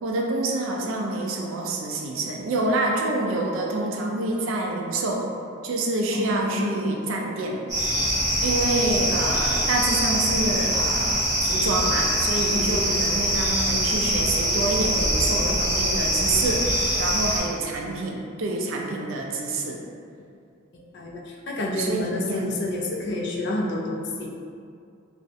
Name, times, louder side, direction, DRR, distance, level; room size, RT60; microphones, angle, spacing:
voice 1, 0.0-5.3 5.6-8.1 8.4-19.8 21.8-22.4, right 2 dB, 75° right, 0 dB, 0.4 m, -27 dB
voice 2, 6.1-6.8 12.5-13.0 20.7-24.3, left 1 dB, 55° left, -1 dB, 0.3 m, -29 dB
sound 1, 7.7-17.4, equal, 15° right, 0.6 m, -23 dB
2.4 x 2.1 x 2.6 m, 2.4 s
head